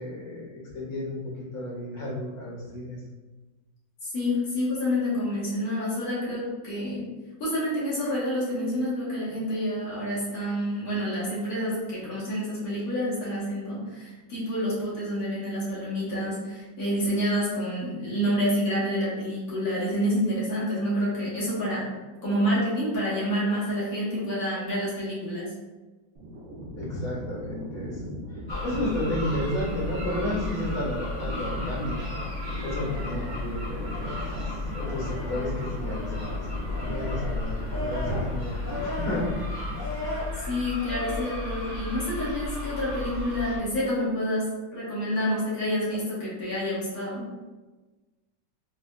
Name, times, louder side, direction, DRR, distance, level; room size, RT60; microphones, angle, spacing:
voice 1, 0.0-3.0 26.7-32.0 32.6-39.3, left 1 dB, 80° left, -5 dB, 1.7 m, -32 dB
voice 2, 4.0-7.1 7.4-21.9 22.2-25.5 40.4-47.2, equal, 55° left, -8 dB, 1.5 m, -28 dB
sound 1, 26.2-40.4, equal, 85° right, 0.7 m, -39 dB
sound 2, 28.5-43.6, left 2 dB, 30° left, 0.9 m, -33 dB
4.2 x 2.3 x 2.2 m, 1.2 s
omnidirectional pair, 2.0 m